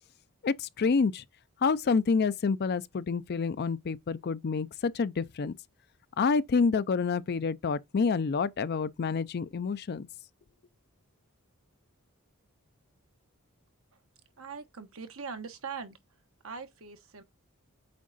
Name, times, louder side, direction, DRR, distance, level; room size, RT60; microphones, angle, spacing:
voice 1, 0.4-1.2 1.6-5.5 6.2-10.1, left 5 dB, 45° left, 0.4 m, -28 dB
voice 2, 14.4-16.0 16.4-17.2, right 5 dB, 65° right, 1.1 m, -41 dB
8.6 x 3.7 x 4.0 m
head